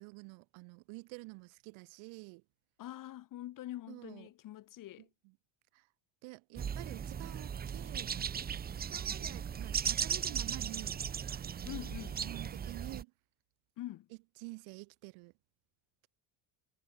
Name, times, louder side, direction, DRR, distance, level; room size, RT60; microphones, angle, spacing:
voice 1, 0.0-2.4 3.9-4.3 5.0-5.3 5.7-5.9 6.2-11.0 11.3-13.1 14.4-15.3, right 28 dB, 80° right, 1.9 m, -49 dB
voice 2, 2.8-5.1 11.6-12.2 13.8-14.1, left 14 dB, 45° left, 2.4 m, -45 dB
sound 1, 6.6-13.0, right 7 dB, 20° right, 1.0 m, -37 dB
cardioid pair, 175°, 47 cm